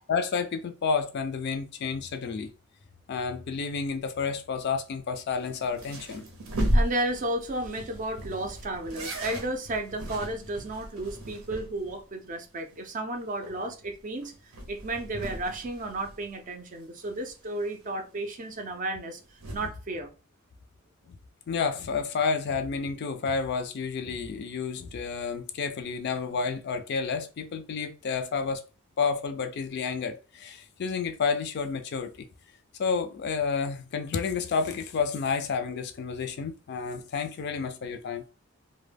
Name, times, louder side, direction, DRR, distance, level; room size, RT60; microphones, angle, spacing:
voice 1, 0.1-2.5 3.1-6.2 19.6-19.7 21.5-28.6 29.0-32.3 32.8-38.2, left 5 dB, 50° left, 0.4 m, -30 dB
sound 1, 5.3-12.0 12.3-12.4 12.7-12.8 13.2-16.8 17.0-18.2 19.0-19.7, equal, 85° right, 0.7 m, -34 dB
voice 2, 6.7-20.1, right 2 dB, 40° right, 0.4 m, -33 dB
2.1 x 2.1 x 3.3 m
head